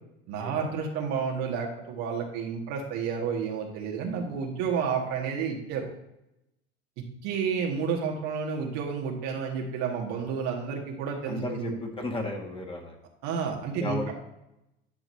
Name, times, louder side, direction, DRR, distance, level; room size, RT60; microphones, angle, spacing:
voice 1, 0.3-5.9 7.2-11.7 13.2-14.0, right 6 dB, 60° right, 0 dB, 2.0 m, -30 dB
voice 2, 11.3-13.0 13.8-14.1, left 2 dB, 20° left, 1 dB, 1.8 m, -33 dB
10.5 x 5.9 x 2.8 m, 0.87 s
hypercardioid pair, 80°, 30 cm